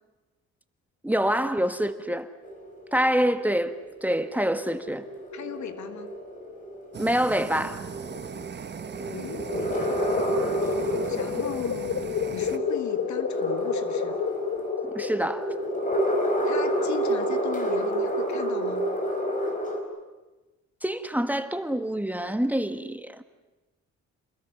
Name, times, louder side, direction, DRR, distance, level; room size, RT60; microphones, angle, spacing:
voice 1, 1.0-2.3 2.9-3.7 4.0-5.0 7.0-7.8 14.9-15.5 20.8-23.2, equal, 5° right, 1.4 m, -26 dB
sound 1, 2.4-19.8, equal, 25° left, 4.7 m, -30 dB
voice 2, 5.3-6.1 9.1-10.0 11.1-12.1 12.3-14.2 16.5-18.9, left 8 dB, 70° left, 2.0 m, -38 dB
Fire, 6.9-12.6, right 6 dB, 35° right, 1.0 m, -38 dB
sound 2, 9.1-15.8, left 9 dB, 55° left, 1.1 m, -31 dB
28.0 x 21.0 x 7.0 m
cardioid pair, 90°, 30 cm